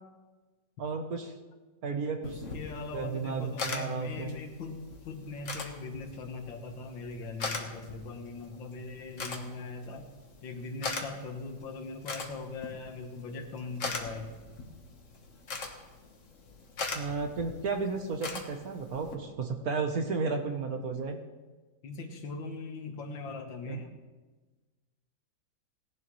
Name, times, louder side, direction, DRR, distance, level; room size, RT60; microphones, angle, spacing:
voice 1, 0.8-1.3 1.8-2.4 2.9-4.3 16.9-21.2 23.7-23.8, right 4 dB, 55° right, 5 dB, 1.2 m, -33 dB
voice 2, 2.2-10.1 10.4-14.3 21.8-23.9, left 3 dB, 70° left, 5 dB, 2.0 m, -40 dB
sound 1, 2.2-19.1, left 3 dB, 45° left, 1.4 m, -41 dB
18.0 x 11.0 x 3.1 m, 1.2 s
omnidirectional pair, 2.2 m